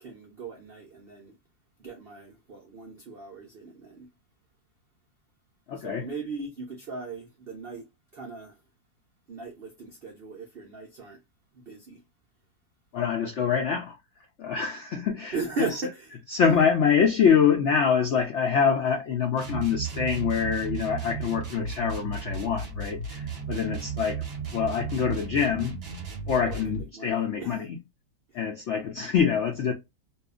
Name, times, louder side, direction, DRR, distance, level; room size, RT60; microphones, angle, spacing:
voice 1, 0.0-1.4 1.8-4.1 5.8-7.9 8.1-8.6 9.3-11.2 11.5-12.0 15.3-16.2 26.4-27.6, right 4 dB, 75° right, 0.5 m, -38 dB
voice 2, 5.7-6.1 12.9-14.0 14.4-15.8 16.3-24.2 24.5-25.8 26.3-27.8 28.3-29.7, left 7 dB, 80° left, 0.6 m, -25 dB
sound 1, 19.3-26.9, right 5 dB, 45° right, 0.9 m, -35 dB
2.7 x 2.4 x 2.3 m
omnidirectional pair, 1.8 m